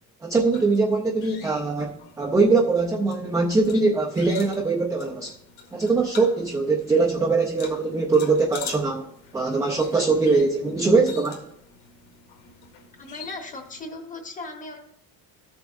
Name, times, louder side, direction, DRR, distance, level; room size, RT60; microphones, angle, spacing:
voice 1, 0.2-5.3 5.7-9.1 9.3-11.4, right 3 dB, 10° right, -1 dB, 0.4 m, -22 dB
sound 1, 0.5-13.9, left 6 dB, 85° left, 1.9 m, -45 dB
voice 2, 12.9-14.8, left 2 dB, 20° left, 4 dB, 1.0 m, -37 dB
14.5 x 7.0 x 2.5 m, 0.76 s
cardioid pair, 170°, 40 cm